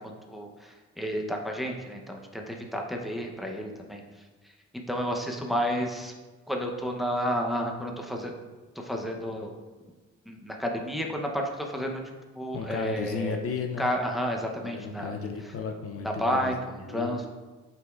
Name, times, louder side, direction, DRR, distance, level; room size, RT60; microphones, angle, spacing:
voice 1, 0.0-4.0 4.4-6.1 6.5-8.3 8.8-9.5 10.3-12.0 12.3-13.4 13.8-15.5 16.0-16.6 16.9-17.3, equal, ahead, 1 dB, 0.7 m, -31 dB
voice 2, 12.5-13.9 14.6-17.3, left 5 dB, 50° left, 4 dB, 0.6 m, -34 dB
7.8 x 5.1 x 2.4 m, 1.3 s
cardioid pair, 90°, 30 cm